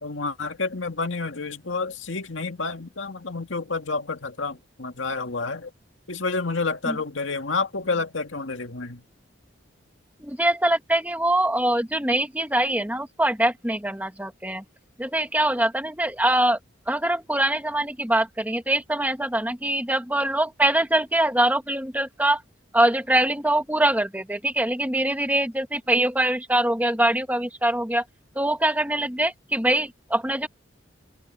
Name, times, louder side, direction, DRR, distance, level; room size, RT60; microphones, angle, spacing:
voice 1, 0.0-5.7 6.1-9.0, left 3 dB, 80° left, 2.1 m, -29 dB
voice 2, 10.2-14.6 15.0-16.6 16.9-22.4 22.7-28.0 28.4-30.5, right 1 dB, 10° right, 1.9 m, -23 dB
open air
head